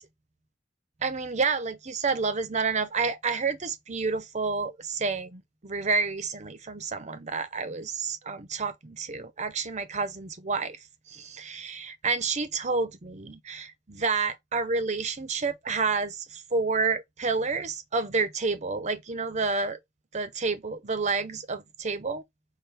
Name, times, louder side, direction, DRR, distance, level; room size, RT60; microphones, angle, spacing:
voice 1, 1.0-10.8 11.1-19.8 20.1-22.2, right 4 dB, 40° right, 0.7 m, -29 dB
5.5 x 2.5 x 3.4 m
head